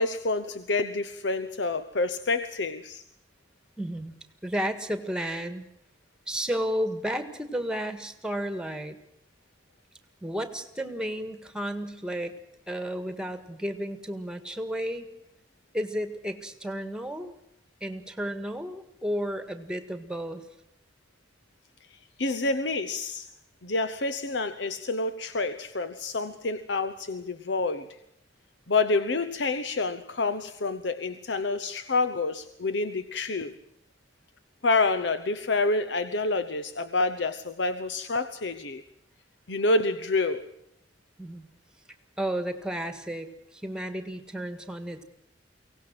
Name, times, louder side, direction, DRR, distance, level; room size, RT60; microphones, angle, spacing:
voice 1, 0.0-3.0 22.2-23.3 23.6-28.0 28.7-33.5 34.6-38.8 39.5-40.4, left 3 dB, 80° left, 11 dB, 0.9 m, -28 dB
voice 2, 3.8-4.1 4.4-5.6 6.3-9.0 10.2-12.3 12.7-15.1 15.7-17.3 17.8-20.4 41.2-41.5 42.2-45.0, equal, 5° right, 10 dB, 1.8 m, -32 dB
23.5 x 18.0 x 7.7 m, 0.75 s
head